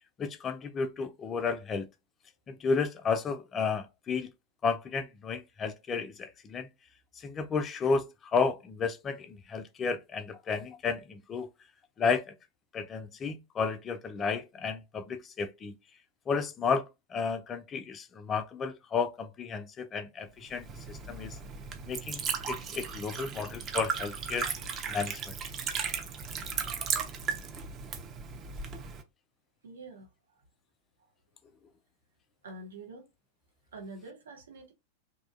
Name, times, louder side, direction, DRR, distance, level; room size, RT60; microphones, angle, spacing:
voice 1, 0.2-1.9 2.5-4.3 4.6-6.7 7.2-11.5 12.0-12.3 12.7-15.7 16.3-21.4 21.9-24.5 24.9-25.3, left 5 dB, 25° left, 0.3 m, -32 dB
Liquid, 20.5-29.0, right 6 dB, 30° right, 0.5 m, -36 dB
voice 2, 29.6-30.4 31.0-31.1 32.4-33.1 33.7-34.7, right 2 dB, 65° right, 0.7 m, -46 dB
2.9 x 2.2 x 2.4 m
figure-of-eight pair, 90°, 0 cm